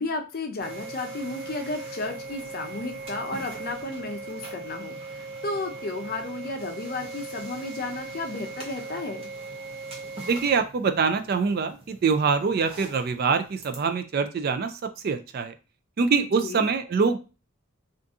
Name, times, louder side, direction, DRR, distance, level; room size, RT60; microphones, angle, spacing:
voice 1, 0.0-9.3 16.4-16.7, left 3 dB, 45° left, 4 dB, 0.5 m, -33 dB
sound 1, 0.6-13.9, right 3 dB, 25° right, 0.7 m, -39 dB
voice 2, 10.3-14.7 15.0-15.5 16.0-17.2, right 5 dB, 45° right, 8 dB, 0.3 m, -24 dB
2.6 x 2.5 x 3.5 m, 0.31 s
head